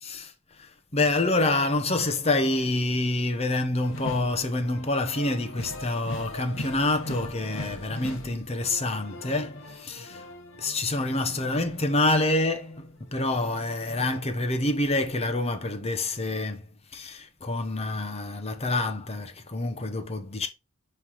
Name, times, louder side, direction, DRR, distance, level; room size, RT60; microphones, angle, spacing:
voice 1, 0.0-10.3 10.6-16.7 16.9-20.5, left 2 dB, 30° left, 0.9 m, -27 dB
sound 1, 3.8-12.6 13.0-14.2, left 1 dB, 60° left, 1.1 m, -41 dB
9.6 x 3.4 x 3.1 m
head